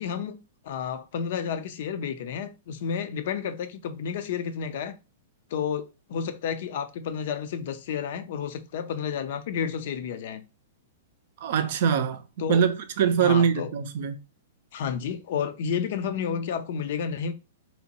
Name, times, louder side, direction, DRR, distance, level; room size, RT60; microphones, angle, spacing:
voice 1, 0.0-4.9 5.5-10.4 12.4-12.6 13.2-13.7 14.7-17.3, left 7 dB, 55° left, 0.4 m, -31 dB
voice 2, 11.4-12.2 12.5-14.2, right 7 dB, 55° right, 0.4 m, -23 dB
2.8 x 2.2 x 2.8 m
figure-of-eight pair, 105°, 0 cm